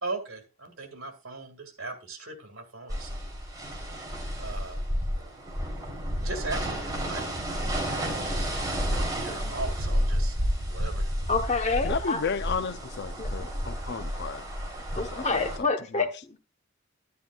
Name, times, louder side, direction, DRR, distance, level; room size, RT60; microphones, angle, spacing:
voice 1, 0.0-3.1 4.4-4.8 6.2-8.5 8.9-10.3 10.6-11.1, right 3 dB, 75° right, 2.1 m, -39 dB
sound 1, 2.9-15.6, equal, 15° right, 3.3 m, -31 dB
voice 2, 11.3-12.2 13.2-13.5 14.9-16.4, left 4 dB, 30° left, 1.0 m, -28 dB
voice 3, 11.8-14.4 15.1-15.4 15.9-16.1, left 5 dB, 50° left, 0.5 m, -33 dB
11.0 x 10.5 x 2.4 m
head